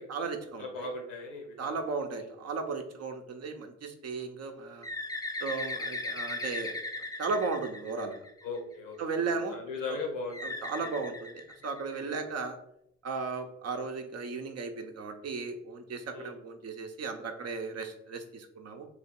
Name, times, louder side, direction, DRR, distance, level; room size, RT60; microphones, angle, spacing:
voice 1, 0.0-0.9 1.6-4.9 5.4-6.8 7.2-8.2 9.0-9.6 9.9-10.0 10.4-12.6 13.0-18.9, right 4 dB, 40° right, 5 dB, 0.7 m, -35 dB
voice 2, 0.6-1.7 2.2-2.3 8.4-9.0 9.3-10.9 12.0-12.2 16.1-16.4, left 3 dB, 80° left, 1 dB, 0.9 m, -39 dB
Bird, 4.8-8.6 10.3-12.1, left 2 dB, 10° left, 0.5 m, -38 dB
3.1 x 3.0 x 4.3 m, 0.77 s
figure-of-eight pair, 45°, 38 cm